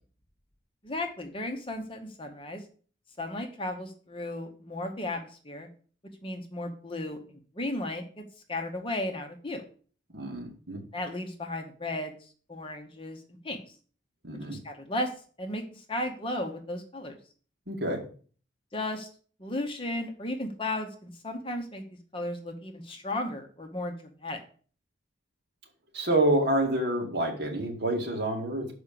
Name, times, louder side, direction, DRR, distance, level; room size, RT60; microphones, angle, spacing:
voice 1, 0.8-2.6 3.2-5.7 6.2-7.2 7.5-8.2 8.5-9.6 10.9-13.7 14.4-15.1 15.4-17.2 18.7-19.1 19.4-21.8 22.1-23.9 24.2-24.4, left 1 dB, 25° left, 5 dB, 0.9 m, -35 dB
voice 2, 10.1-10.8 14.2-14.6 17.7-18.0 25.9-28.7, right 1 dB, 55° right, 1 dB, 2.0 m, -28 dB
6.2 x 4.9 x 6.8 m, 0.42 s
head